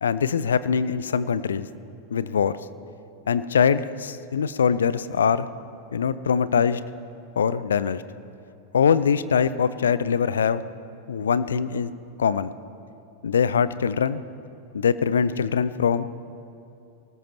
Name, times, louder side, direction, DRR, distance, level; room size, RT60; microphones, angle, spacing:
voice 1, 0.0-1.7 2.1-2.6 3.3-5.5 5.9-6.8 7.4-8.0 8.7-10.6 11.1-11.9 12.2-12.5 13.2-14.2 14.7-16.2, left 7 dB, 65° left, 16 dB, 0.5 m, -22 dB
24.5 x 18.5 x 3.1 m, 2.6 s
figure-of-eight pair, 90°, 0 cm